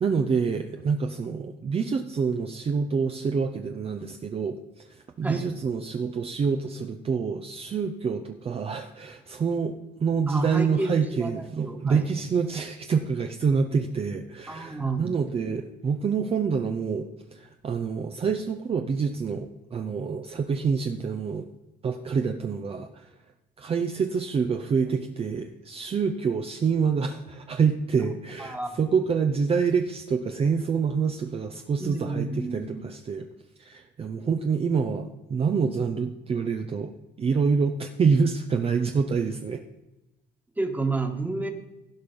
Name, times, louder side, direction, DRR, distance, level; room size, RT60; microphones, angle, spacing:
voice 1, 0.0-9.7 10.0-21.5 21.8-23.1 23.6-33.3 33.6-36.9 37.2-39.6, right 5 dB, 35° right, 6 dB, 0.7 m, -27 dB
voice 2, 10.3-12.1 14.5-15.2 28.4-28.9 31.8-32.9 40.6-41.5, right 3 dB, 10° right, 5 dB, 1.5 m, -31 dB
16.0 x 5.3 x 5.3 m, 1.0 s
cardioid pair, 110°, 17 cm